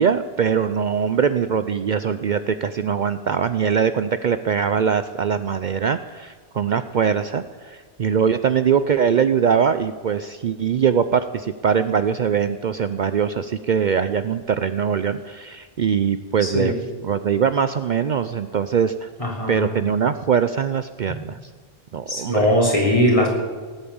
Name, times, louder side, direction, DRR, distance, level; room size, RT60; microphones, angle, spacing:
voice 1, 0.0-16.7 17.0-19.1 19.5-21.4 21.9-22.5, right 7 dB, 55° right, 11 dB, 0.7 m, -22 dB
voice 2, 16.4-16.8 19.2-19.8 22.1-23.3, equal, 35° left, -2 dB, 4.0 m, -20 dB
18.5 x 9.0 x 8.7 m, 1.5 s
omnidirectional pair, 1.0 m